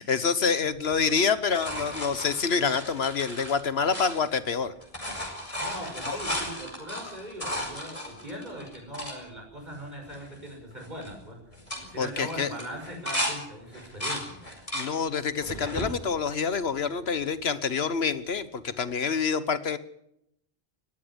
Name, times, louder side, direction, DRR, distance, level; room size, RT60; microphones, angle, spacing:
voice 1, 0.0-4.7 6.1-6.2 12.0-12.5 14.7-19.8, left 5 dB, 80° left, 14 dB, 1.5 m, -27 dB
sound 1, 0.9-4.6 4.8-9.2 9.7-9.8 10.1-10.5 10.8-11.1 11.5-13.3 13.7-14.9 15.4-15.9 16.5-17.3 18.9-19.0, left 1 dB, 35° left, 5.0 m, -35 dB
voice 2, 5.6-11.4 11.8-14.4, equal, 45° right, 2 dB, 6.4 m, -40 dB
20.0 x 14.5 x 9.9 m, 0.78 s
omnidirectional pair, 1.0 m